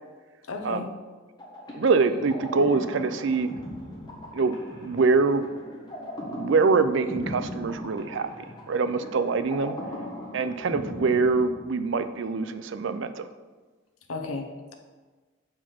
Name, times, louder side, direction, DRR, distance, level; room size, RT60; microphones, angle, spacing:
voice 1, 0.5-0.9 14.1-14.7, left 3 dB, 90° left, 3 dB, 1.0 m, -34 dB
sound 1, 1.4-12.1, left 1 dB, 20° left, 1.2 m, -39 dB
voice 2, 1.7-3.5 4.3-4.6 4.8-5.4 6.3-9.8 10.3-13.3, right 4 dB, 60° right, 11 dB, 0.4 m, -24 dB
6.5 x 4.8 x 5.8 m, 1.3 s
head